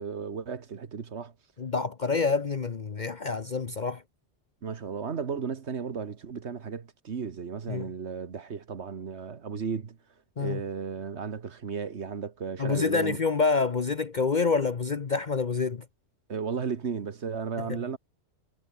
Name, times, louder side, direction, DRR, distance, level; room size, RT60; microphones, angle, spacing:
voice 1, 0.0-1.3 4.6-10.0 10.4-13.2 16.3-18.0, right 6 dB, 70° right, 1.6 m, -34 dB
voice 2, 1.6-4.0 7.7-7.9 10.4-10.6 12.6-15.8 17.6-17.7, left 4 dB, 45° left, 1.0 m, -27 dB
omnidirectional pair, 1.2 m